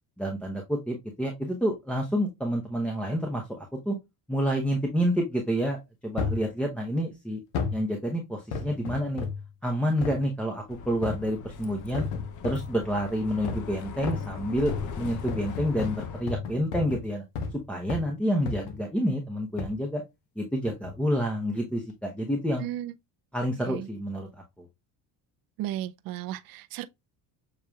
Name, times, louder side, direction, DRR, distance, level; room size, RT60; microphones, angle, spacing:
voice 1, 0.2-4.0 4.3-7.4 7.7-9.3 9.6-12.0 12.4-17.2 17.5-20.0 20.4-22.7 23.3-24.7, equal, 5° left, 0.8 m, -29 dB
sound 1, 6.2-6.5 7.5-7.8 8.5-9.5 10.0-10.2 11.0-11.4 11.9-12.7 13.4-13.7 14.0-17.6 17.9-18.1 18.5-18.8 19.6-19.8 20.6-21.0 21.6-21.7, left 5 dB, 80° left, 1.1 m, -33 dB
Bus, 10.7-16.2, left 6 dB, 45° left, 0.7 m, -40 dB
voice 2, 22.6-22.9 23.6-23.9 25.6-26.9, right 13 dB, 55° right, 0.6 m, -34 dB
6.7 x 3.0 x 2.3 m
supercardioid pair, 105°, 43 cm